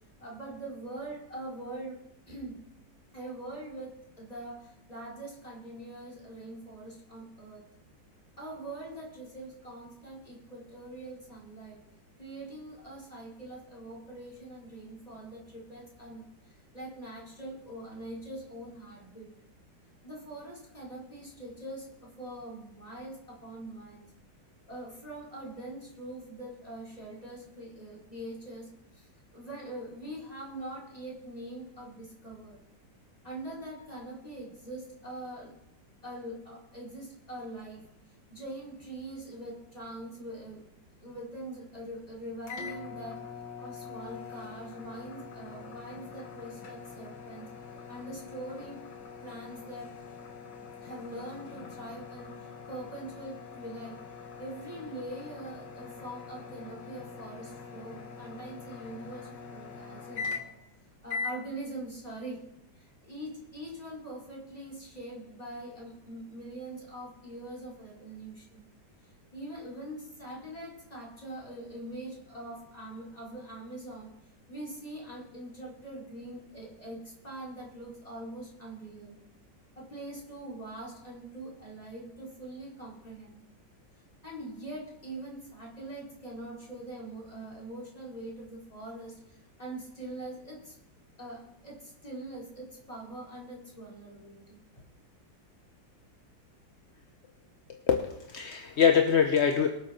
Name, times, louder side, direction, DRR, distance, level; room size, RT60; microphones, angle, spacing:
voice 1, 0.2-2.0 2.3-2.6 3.1-7.7 8.4-11.8 12.2-16.2 16.7-19.3 20.0-24.1 24.7-32.6 33.2-35.5 36.0-37.9 38.3-40.6 41.0-43.2 43.6-47.5 47.9-48.8 49.2-49.9 50.8-54.0 54.4-60.3 61.0-62.4 62.7-68.6 69.3-74.2 74.5-79.2 79.8-83.4 84.2-90.7 91.2-94.6, right 1 dB, 20° left, -4 dB, 4.7 m, -43 dB
sound 1, 42.5-60.7 61.1-61.4, left 5 dB, 70° left, 2.0 m, -43 dB
voice 2, 97.9-99.7, left 7 dB, 45° left, 4 dB, 0.9 m, -24 dB
23.0 x 7.7 x 4.3 m, 0.82 s
omnidirectional pair, 2.0 m